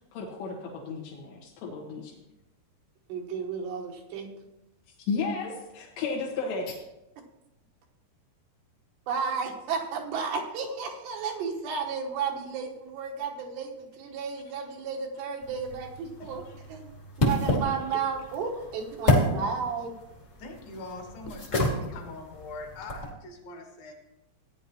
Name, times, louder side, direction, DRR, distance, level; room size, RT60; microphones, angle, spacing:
voice 1, 0.1-2.2 5.1-6.8, left 4 dB, 85° left, -3 dB, 3.6 m, -33 dB
voice 2, 3.1-4.3 9.1-16.4 16.7-16.9 17.2-19.9, right 5 dB, 90° right, 1 dB, 3.5 m, -33 dB
sound 1, 15.4-23.1, left 1 dB, 40° left, 1.0 m, -30 dB
voice 3, 16.2-16.7 17.5-18.7 19.4-19.8 20.4-23.9, left 3 dB, 65° left, 3 dB, 2.9 m, -44 dB
16.0 x 9.8 x 3.0 m, 0.91 s
omnidirectional pair, 4.8 m